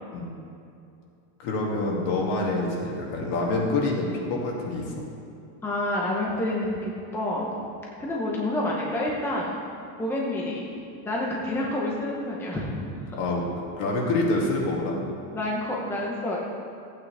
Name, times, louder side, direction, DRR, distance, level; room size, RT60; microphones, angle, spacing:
voice 1, 1.4-4.8 13.2-13.4 13.8-15.0, left 2 dB, 60° left, -2 dB, 2.4 m, -26 dB
voice 2, 5.6-7.5 8.0-9.5 10.0-10.7 11.0-12.9 15.3-16.4, left 1 dB, 5° left, -4 dB, 0.8 m, -28 dB
15.5 x 8.7 x 3.4 m, 2.6 s
cardioid pair, 175°, 45 cm